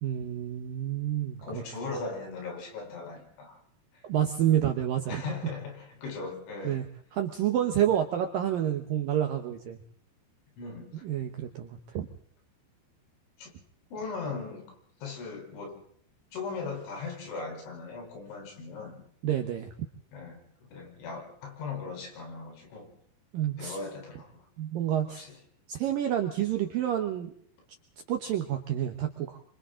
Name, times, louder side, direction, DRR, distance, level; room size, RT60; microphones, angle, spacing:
voice 1, 0.0-1.6 4.1-5.2 6.6-6.9 7.1-9.8 11.0-12.1 19.2-19.7 23.3-23.8 24.6-25.3 25.7-27.3 28.1-29.4, right 10 dB, 70° right, 5 dB, 2.2 m, -29 dB
voice 2, 1.4-3.6 3.9-4.0 5.1-6.8 10.6-11.0 13.4-13.5 13.9-14.8 15.0-15.8 16.3-19.0 20.1-22.9 23.6-24.5 25.1-25.3, left 4 dB, 75° left, 2 dB, 6.5 m, -39 dB
28.0 x 25.0 x 3.8 m, 0.62 s
omnidirectional pair, 5.4 m